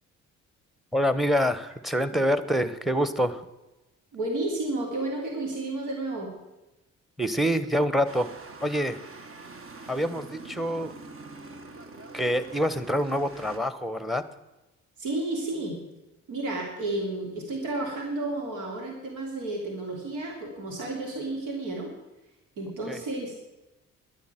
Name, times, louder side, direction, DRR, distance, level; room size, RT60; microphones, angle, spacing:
voice 1, 0.9-3.4 7.2-8.3 8.6-9.0 9.9-10.9 12.1-14.2 22.9-23.0, equal, ahead, 13 dB, 1.1 m, -26 dB
voice 2, 4.1-6.3 15.0-15.8 16.3-21.9 22.6-23.5, right 2 dB, 85° right, 0 dB, 3.1 m, -32 dB
sound 1, 8.0-13.6, right 3 dB, 45° right, 1.6 m, -44 dB
11.0 x 10.5 x 9.1 m, 1.0 s
cardioid pair, 90°, 30 cm